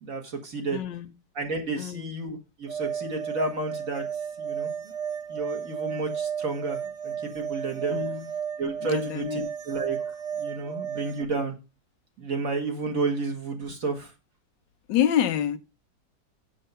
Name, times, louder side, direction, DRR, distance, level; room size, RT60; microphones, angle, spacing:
voice 1, 0.0-0.8 1.4-4.0 4.4-4.7 5.3-8.0 8.6-10.0 10.4-11.5 12.2-14.1, right 3 dB, 50° right, 2.1 m, -31 dB
voice 2, 0.7-1.1 1.8-2.1 7.9-8.3 8.8-9.5 10.6-10.7 14.9-15.6, left 10 dB, 90° left, 1.4 m, -27 dB
sound 1, 2.7-11.2, right 8 dB, 75° right, 1.6 m, -33 dB
7.5 x 6.7 x 5.5 m
omnidirectional pair, 1.9 m